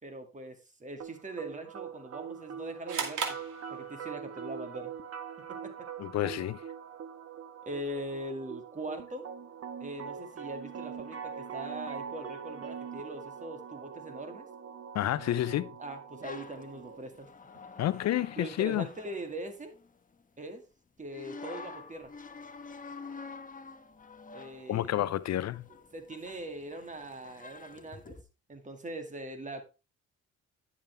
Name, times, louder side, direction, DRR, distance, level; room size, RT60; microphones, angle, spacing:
voice 1, 0.0-3.4 3.7-4.9 5.5-5.9 7.6-9.3 9.8-14.5 15.8-17.3 18.4-19.7 20.4-20.6 21.0-22.1 24.3-25.0 25.9-28.2 28.5-29.6, right 1 dB, 25° right, 2.2 m, -41 dB
sound 1, 1.0-17.0, right 7 dB, 50° right, 1.3 m, -43 dB
sound 2, 2.9-4.3, right 7 dB, 75° right, 2.3 m, -36 dB
voice 2, 6.0-6.6 14.9-15.7 17.8-18.9 24.7-25.6, left 13 dB, 60° left, 0.5 m, -29 dB
sound 3, 16.2-20.2 21.1-28.2, left 4 dB, 25° left, 1.1 m, -48 dB
10.5 x 7.1 x 3.3 m
cardioid pair, 90°, 30 cm